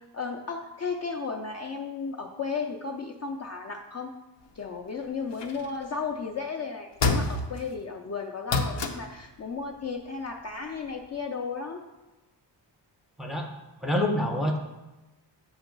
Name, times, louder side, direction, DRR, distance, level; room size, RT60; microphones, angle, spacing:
voice 1, 0.1-4.1 4.6-11.8, left 5 dB, 40° left, 2 dB, 0.4 m, -34 dB
sound 1, 5.3-6.0 7.0-7.7 8.5-9.2 11.0-11.1, left 3 dB, 80° left, 0.7 m, -28 dB
voice 2, 13.2-13.5 13.8-14.6, left 1 dB, ahead, 2 dB, 0.6 m, -26 dB
7.1 x 3.0 x 5.2 m, 1.1 s
wide cardioid pair, 140°, 42 cm